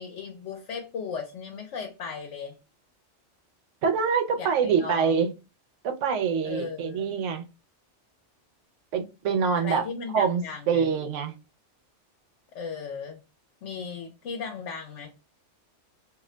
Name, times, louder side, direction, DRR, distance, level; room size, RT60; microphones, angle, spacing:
voice 1, 0.0-2.5 4.4-5.2 6.4-7.1 9.5-10.9 12.5-13.2 13.6-15.1, left 5 dB, 80° left, 1.0 m, -36 dB
voice 2, 3.8-5.3 5.8-7.4 8.9-9.8 10.1-11.3, right 6 dB, 90° right, 1.0 m, -25 dB
2.6 x 2.1 x 3.7 m
omnidirectional pair, 1.2 m